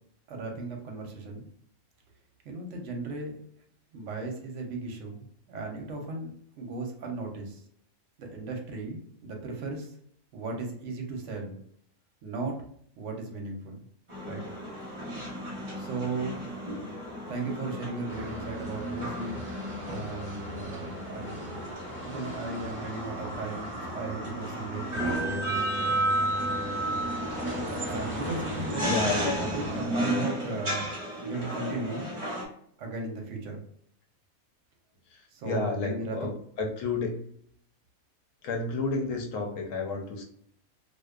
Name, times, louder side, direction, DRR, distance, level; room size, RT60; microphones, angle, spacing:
voice 1, 0.3-1.4 2.4-3.4 3.9-6.3 6.6-7.6 8.2-9.9 10.3-11.6 12.2-12.6 13.0-13.8 14.2-14.4 15.8-16.4 17.3-25.7 27.8-32.1 32.8-33.6 35.3-36.4, right 3 dB, 65° right, 2 dB, 0.8 m, -36 dB
sound 1, 14.1-32.4, right 1 dB, 30° right, 0.6 m, -33 dB
sound 2, 18.1-29.8, equal, 10° left, 0.7 m, -41 dB
voice 2, 28.8-29.4 35.1-36.3 36.6-37.2 38.4-40.2, left 3 dB, 70° left, 3 dB, 0.9 m, -31 dB
2.5 x 2.1 x 2.3 m, 0.66 s
omnidirectional pair, 1.5 m